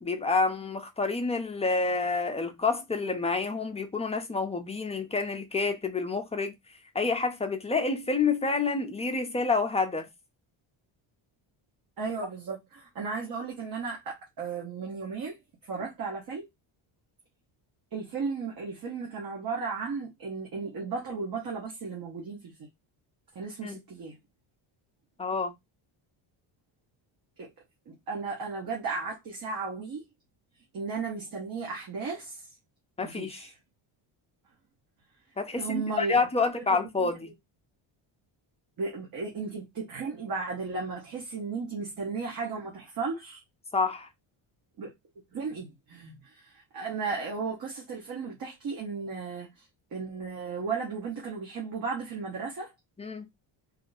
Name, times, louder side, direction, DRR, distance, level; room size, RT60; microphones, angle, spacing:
voice 1, 0.0-6.5 6.9-10.1 23.6-23.8 25.2-25.5 33.0-33.5 35.4-37.3 43.7-44.1 53.0-53.3, left 4 dB, 15° left, 0.3 m, -28 dB
voice 2, 12.0-16.5 17.9-22.5 23.3-24.2 27.4-27.5 27.9-30.0 30.7-32.4 33.0-33.5 35.6-36.2 37.0-37.1 38.8-43.4 44.8-44.9 45.3-49.6 49.9-52.7, right 4 dB, 45° right, 1.2 m, -35 dB
3.1 x 2.6 x 3.9 m
cardioid pair, 165°, 50 cm